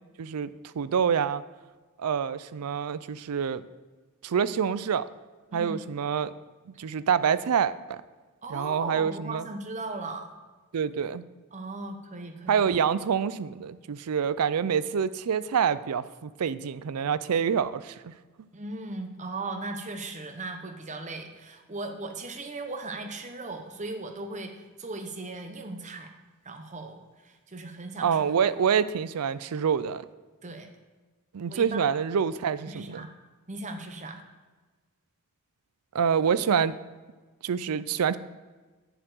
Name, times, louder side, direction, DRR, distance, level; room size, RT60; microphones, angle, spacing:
voice 1, 0.2-0.5 0.8-1.4 2.0-3.6 4.2-5.1 5.5-6.3 6.8-8.0 8.5-9.4 10.7-11.2 12.5-18.1 28.0-30.0 31.3-33.0 35.9-36.8 37.4-38.2, right 7 dB, 85° right, 16 dB, 0.4 m, -26 dB
voice 2, 5.5-5.8 8.4-10.3 11.5-12.6 18.5-26.1 26.4-28.4 30.4-30.7 31.5-31.9 32.7-33.1 33.5-34.2, right 2 dB, 30° right, 5 dB, 0.9 m, -38 dB
11.0 x 4.5 x 7.8 m, 1.3 s
head